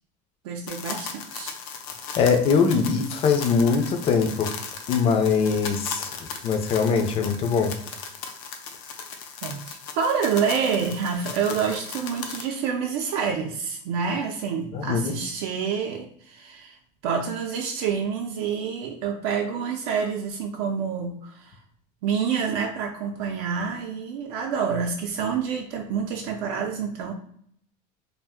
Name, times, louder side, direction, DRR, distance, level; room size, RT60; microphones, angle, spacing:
voice 1, 0.4-1.6 9.4-16.8 17.0-21.6 22.0-27.1, right 6 dB, 90° right, 1 dB, 0.5 m, -27 dB
sound 1, 0.7-12.4, left 6 dB, 85° left, 0.5 m, -37 dB
voice 2, 2.2-4.5 4.9-6.1 6.4-7.7 14.7-15.1, left 5 dB, 35° left, 5 dB, 0.4 m, -22 dB
2.5 x 2.1 x 3.5 m, 0.65 s
cardioid pair, 145°, 17 cm